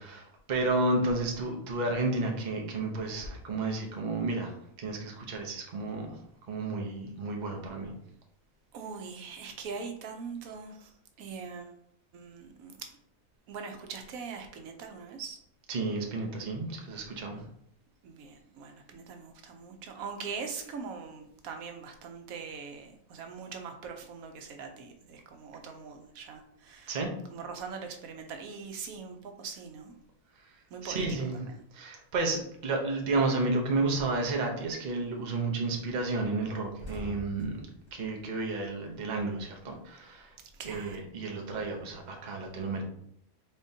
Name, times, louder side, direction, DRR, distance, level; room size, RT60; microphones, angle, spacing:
voice 1, 0.0-6.1 6.5-7.9 15.7-17.4 26.9-27.1 30.8-31.4 31.7-37.6 37.9-40.3 40.6-42.8, right 2 dB, 40° right, 1 dB, 0.7 m, -31 dB
voice 2, 8.7-10.9 11.2-11.8 12.1-12.9 13.5-15.4 17.3-17.4 18.0-27.0 27.3-29.9 30.7-31.6 40.5-41.0, right 5 dB, 90° right, 5 dB, 1.1 m, -42 dB
sound 1, 36.4-39.3 39.6-41.2, left 1 dB, 40° left, 1.9 m, -47 dB
4.3 x 3.7 x 2.7 m, 0.71 s
omnidirectional pair, 1.4 m